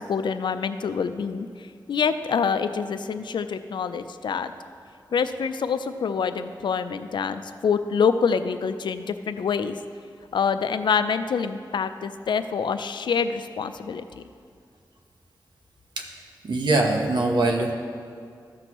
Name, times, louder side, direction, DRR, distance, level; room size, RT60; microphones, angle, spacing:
voice 1, 0.0-4.5 5.1-9.8 10.3-14.2, left 6 dB, 80° left, 10 dB, 0.4 m, -26 dB
voice 2, 16.4-17.7, right 2 dB, 70° right, 2 dB, 1.0 m, -22 dB
13.5 x 6.1 x 3.0 m, 2.3 s
wide cardioid pair, 145°, 8 cm